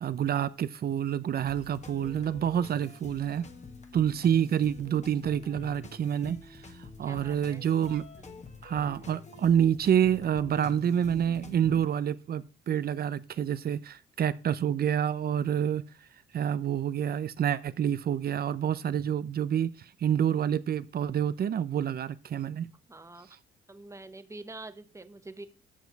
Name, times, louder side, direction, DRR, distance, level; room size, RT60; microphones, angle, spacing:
voice 1, 0.0-3.5 3.9-6.7 7.0-8.0 8.6-15.8 16.3-22.7, right 9 dB, 50° right, 0.7 m, -28 dB
sound 1, 1.4-11.9, left 4 dB, 35° left, 1.5 m, -47 dB
voice 2, 7.0-7.6 8.2-8.4 22.9-23.3 23.7-25.5, right 2 dB, 15° right, 1.0 m, -46 dB
9.4 x 6.3 x 4.7 m
cardioid pair, 90°, 20 cm